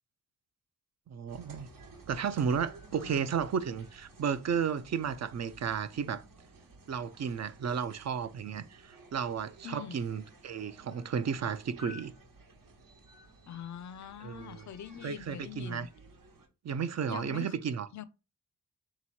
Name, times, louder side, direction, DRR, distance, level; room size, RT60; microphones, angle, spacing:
voice 1, 1.1-1.7 2.1-6.2 6.9-12.1 14.2-14.6 15.0-15.9 16.6-17.9, right 7 dB, 50° right, 0.5 m, -33 dB
sound 1, 1.3-16.5, right 1 dB, 75° right, 1.2 m, -54 dB
voice 2, 2.9-3.3 9.6-10.0 13.4-15.9 17.1-17.6 17.9-18.0, left 9 dB, 60° left, 0.5 m, -44 dB
3.6 x 3.0 x 4.2 m
cardioid pair, 85°, 33 cm